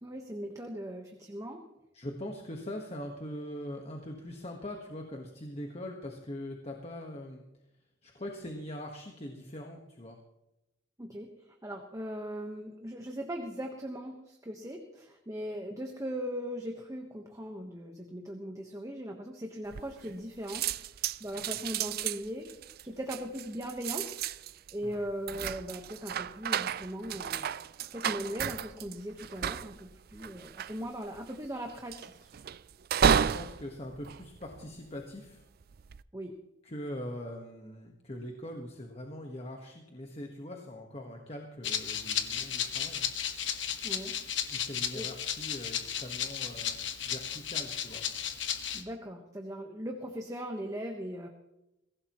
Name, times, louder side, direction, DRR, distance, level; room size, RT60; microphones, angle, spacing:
voice 1, 0.0-1.6 11.0-20.6 21.2-22.5 22.8-24.2 24.7-27.5 27.9-32.3 36.1-36.3 43.8-44.1 44.9-45.1 48.7-51.3, equal, 15° right, 2 dB, 1.3 m, -39 dB
voice 2, 1.9-7.4 8.0-10.2 21.4-21.6 24.8-25.0 33.0-35.4 36.6-43.1 44.5-46.8 47.0-48.1, left 1 dB, 35° left, 2 dB, 1.5 m, -42 dB
sound 1, 19.7-20.2 20.5-35.0 35.6-36.0, right 8 dB, 55° right, 0.4 m, -33 dB
Rattle (instrument), 41.6-48.8, left 9 dB, 75° left, 1.4 m, -34 dB
23.0 x 16.5 x 3.1 m, 0.91 s
head